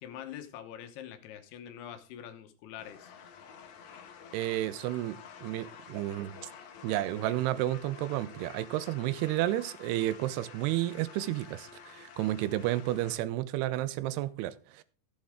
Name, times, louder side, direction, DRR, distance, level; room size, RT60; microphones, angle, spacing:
voice 1, 0.0-3.1, left 10 dB, 80° left, 3.1 m, -44 dB
sound 1, 2.8-13.2, left 7 dB, 60° left, 2.0 m, -50 dB
voice 2, 4.3-6.4 6.8-14.8, right 14 dB, 85° right, 2.7 m, -31 dB
15.0 x 8.6 x 3.6 m
omnidirectional pair, 4.7 m